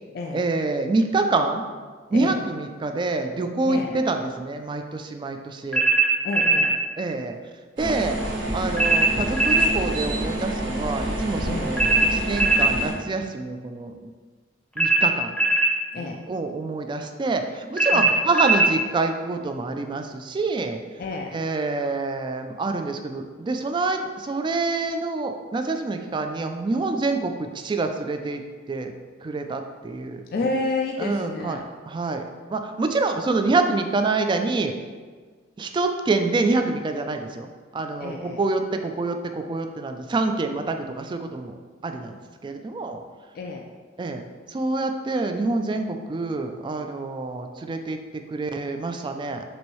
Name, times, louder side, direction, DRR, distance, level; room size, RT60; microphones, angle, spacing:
voice 1, 0.3-1.6 2.1-5.8 7.0-7.4 7.8-8.2 8.5-14.0 14.8-15.3 16.0-20.8 21.3-28.4 28.7-28.9 29.2-30.2 31.0-31.6 31.9-32.2 32.5-34.7 35.6-41.5 41.8-43.0 44.0-44.2 44.5-49.4, right 3 dB, 25° right, 6 dB, 0.3 m, -26 dB
voice 2, 3.6-4.0 6.2-6.7 11.5-11.8 15.9-16.2 17.9-18.1 21.0-21.4 30.3-31.7 38.0-38.4 43.3-43.6, left 3 dB, 55° left, 1 dB, 0.3 m, -30 dB
sound 1, 5.7-6.7 8.8-9.7 11.8-12.7 14.8-15.7 17.8-18.7, right 2 dB, 5° left, 0.7 m, -19 dB
sound 2, 7.8-12.9, right 1 dB, 75° right, 0.9 m, -28 dB
6.1 x 2.7 x 3.0 m, 1.5 s
head